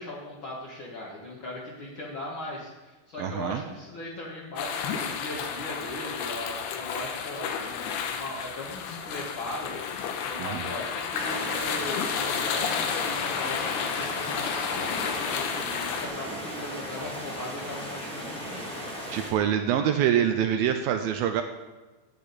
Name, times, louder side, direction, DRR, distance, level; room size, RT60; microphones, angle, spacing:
voice 1, 0.0-9.7 10.3-18.8, left 1 dB, 50° left, -6 dB, 1.5 m, -39 dB
voice 2, 3.2-3.6 10.4-10.6 19.1-21.4, right 9 dB, 80° right, 7 dB, 2.2 m, -25 dB
sound 1, 4.6-16.1, left 7 dB, 80° left, 2.9 m, -31 dB
sound 2, 11.1-19.3, equal, 10° left, 0.3 m, -37 dB
13.5 x 8.3 x 4.1 m, 1.2 s
omnidirectional pair, 4.7 m